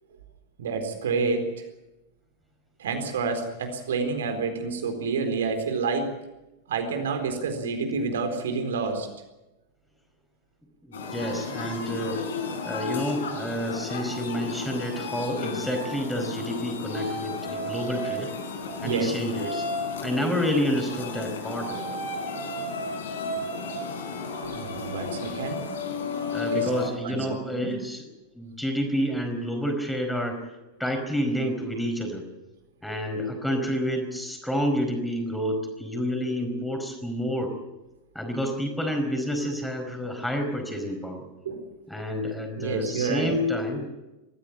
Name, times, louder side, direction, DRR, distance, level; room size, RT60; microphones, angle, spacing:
voice 1, 0.6-1.5 2.8-6.1 6.7-9.1 18.8-19.1 24.5-25.7 26.5-26.7 27.0-27.7 41.4-41.6 42.6-43.3, right 4 dB, 60° right, 6 dB, 4.2 m, -28 dB
voice 2, 10.8-12.3 12.6-18.3 18.8-19.6 20.0-22.0 26.3-28.1 28.3-30.4 30.8-32.2 32.8-37.6 38.1-41.2 41.9-43.9, equal, 5° left, 4 dB, 4.8 m, -29 dB
sound 1, 10.9-26.9, left 3 dB, 65° left, 4.1 m, -33 dB
22.5 x 15.5 x 8.9 m, 1.0 s
figure-of-eight pair, 90°, 0 cm